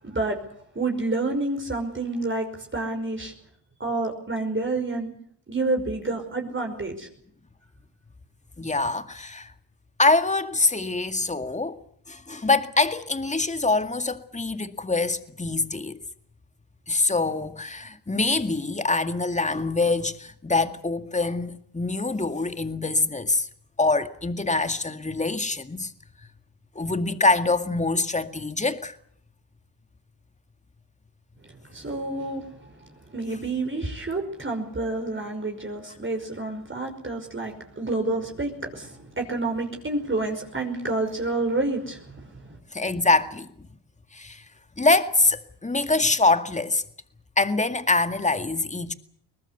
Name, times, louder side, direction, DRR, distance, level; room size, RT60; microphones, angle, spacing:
voice 1, 0.0-0.4 0.8-2.5 2.7-3.3 3.8-5.1 5.5-7.1 31.7-32.7 33.1-42.3, right 2 dB, 25° right, 5.5 m, -28 dB
voice 2, 8.6-9.5 10.0-11.8 12.1-16.0 16.9-23.5 23.8-25.9 26.8-29.0 42.7-43.5 44.1-44.4 44.8-46.8 47.4-48.9, left 3 dB, 15° left, 2.1 m, -24 dB
23.0 x 20.0 x 8.3 m
hypercardioid pair, 55°, 50 cm